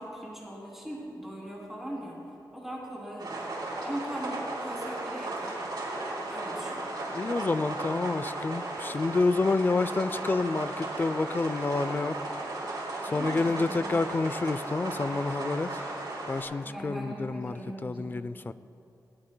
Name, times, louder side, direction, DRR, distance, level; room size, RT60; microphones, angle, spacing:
voice 1, 0.0-3.5 3.8-5.6 6.3-6.8 13.1-14.1 16.6-18.2, equal, 5° right, 3.1 m, -40 dB
sound 1, 3.2-16.4, right 2 dB, 75° right, 3.6 m, -35 dB
voice 2, 7.1-12.2 13.1-15.7 16.3-18.5, left 3 dB, 25° left, 0.3 m, -29 dB
20.0 x 18.5 x 2.2 m
wide cardioid pair, 175°, 7 cm